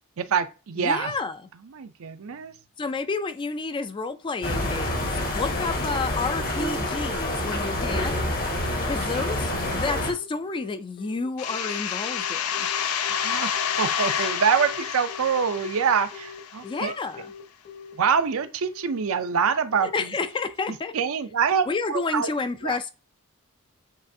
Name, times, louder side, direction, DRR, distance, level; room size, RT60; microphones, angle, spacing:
voice 1, 0.2-1.1 1.7-2.5 8.1-8.9 9.1-9.3 9.7-9.8 13.1-13.5 13.8-16.9 18.0-20.1 20.7-22.3 22.6-22.8, right 6 dB, 75° right, 0.5 m, -26 dB
voice 2, 0.8-1.4 2.8-5.1 5.3-8.5 8.8-12.7 16.6-17.3 19.8-20.9 21.7-22.9, left 4 dB, 25° left, 0.3 m, -30 dB
sound 1, 4.4-10.1, left 1 dB, 45° left, 1.1 m, -27 dB
Telephone, 4.8-21.0, left 6 dB, 60° left, 1.6 m, -44 dB
sound 2, 11.4-16.9, left 8 dB, 85° left, 0.5 m, -29 dB
7.3 x 2.5 x 2.6 m
head